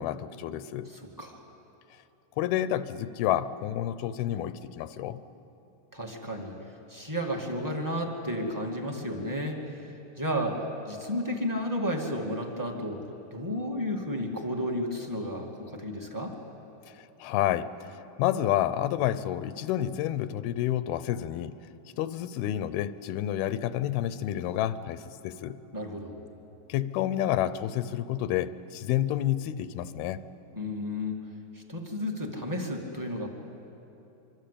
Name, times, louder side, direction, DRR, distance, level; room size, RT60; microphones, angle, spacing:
voice 1, 0.0-0.9 2.4-5.2 17.2-21.6 22.0-25.6 26.7-30.2, left 12 dB, 85° left, 13 dB, 2.6 m, -29 dB
voice 2, 0.9-1.4 5.9-6.5 6.9-9.7 10.2-13.0 13.3-16.3 25.7-26.2 30.5-31.1 31.5-33.3, equal, 10° right, 1 dB, 1.3 m, -32 dB
25.0 x 25.0 x 8.5 m, 2.9 s
omnidirectional pair, 4.3 m